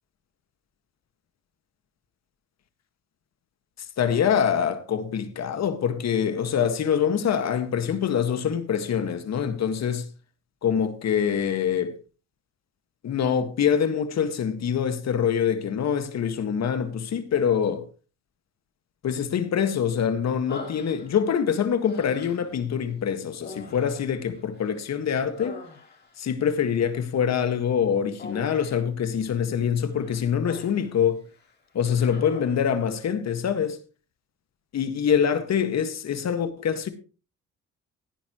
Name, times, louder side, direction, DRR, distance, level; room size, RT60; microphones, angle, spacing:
voice 1, 4.0-10.0 10.6-11.9 13.0-17.8 19.0-25.6 26.2-31.2 31.8-33.8 34.7-36.9, left 8 dB, 60° left, 1.8 m, -25 dB
Human voice, 20.5-21.4 21.8-22.6 23.4-24.8 25.1-26.2 28.2-28.9 29.9-30.9 31.3-31.5 31.9-32.7, left 4 dB, 35° left, 3.7 m, -43 dB
16.5 x 10.5 x 3.1 m
cardioid pair, 90°, 30 cm